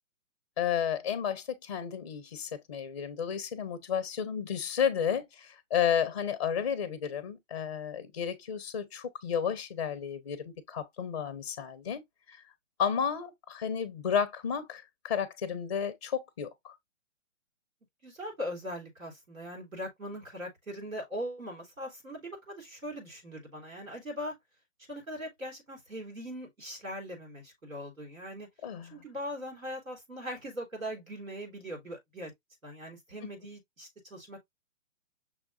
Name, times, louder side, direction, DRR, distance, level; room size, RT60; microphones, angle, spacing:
voice 1, 0.6-12.0 12.3-12.4 12.8-16.8 28.6-29.0, left 7 dB, 25° left, 0.4 m, -32 dB
voice 2, 18.0-24.4 24.9-28.5 28.9-32.3 32.6-34.4, equal, 90° right, 3.4 m, -40 dB
6.1 x 3.5 x 2.4 m
figure-of-eight pair, 130°, 39 cm